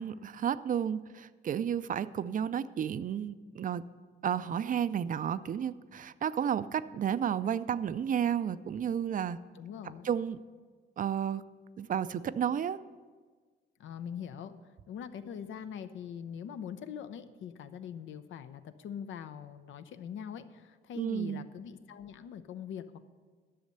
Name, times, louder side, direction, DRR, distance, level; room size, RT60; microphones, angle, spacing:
voice 1, 0.0-3.8 4.2-9.4 10.0-10.4 11.0-11.4 11.8-12.8 21.0-21.5, right 8 dB, 45° right, 15 dB, 0.4 m, -32 dB
voice 2, 9.5-10.1 13.8-14.5 14.9-23.0, left 8 dB, 75° left, 10 dB, 0.7 m, -42 dB
11.0 x 6.4 x 6.7 m, 1.5 s
cardioid pair, 90°, 20 cm